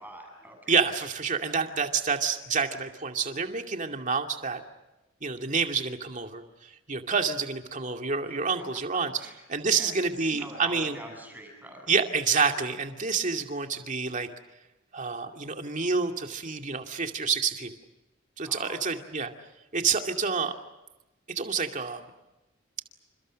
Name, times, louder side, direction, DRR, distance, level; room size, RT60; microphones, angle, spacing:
voice 1, 0.0-0.8 8.3-8.4 8.9-11.9 18.4-19.1, right 1 dB, 10° right, 3 dB, 7.5 m, -45 dB
voice 2, 0.7-4.6 5.2-9.1 9.5-11.0 11.9-14.3 14.9-17.7 18.4-19.3 19.7-20.6 21.3-22.1, right 5 dB, 40° right, 4 dB, 2.5 m, -28 dB
29.5 x 27.5 x 6.5 m, 1.0 s
head